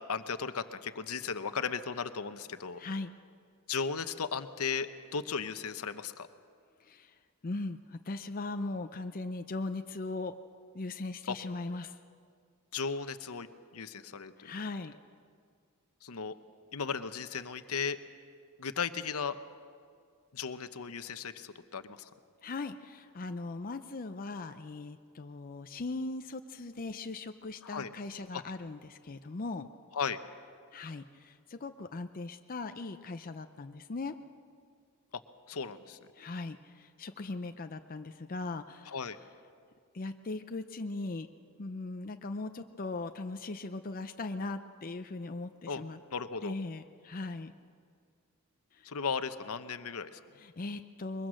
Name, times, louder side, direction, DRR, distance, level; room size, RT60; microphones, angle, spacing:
voice 1, 0.1-2.8 3.7-6.3 11.3-11.4 12.7-14.5 16.0-16.3 16.7-18.0 18.6-19.4 20.3-22.1 27.6-27.9 28.3-28.4 29.9-30.2 35.5-36.0 38.9-39.2 45.7-45.8 46.1-46.6 48.8-50.2, left 5 dB, 75° left, 11 dB, 0.9 m, -36 dB
voice 2, 2.8-3.1 6.8-7.1 7.4-10.3 10.7-11.9 14.4-14.9 22.4-29.7 30.7-34.1 36.2-38.9 39.9-41.3 41.6-46.0 46.4-47.5 48.7-48.9 50.4-51.3, left 3 dB, 40° left, 7 dB, 0.5 m, -39 dB
22.5 x 22.0 x 6.4 m, 2.2 s
head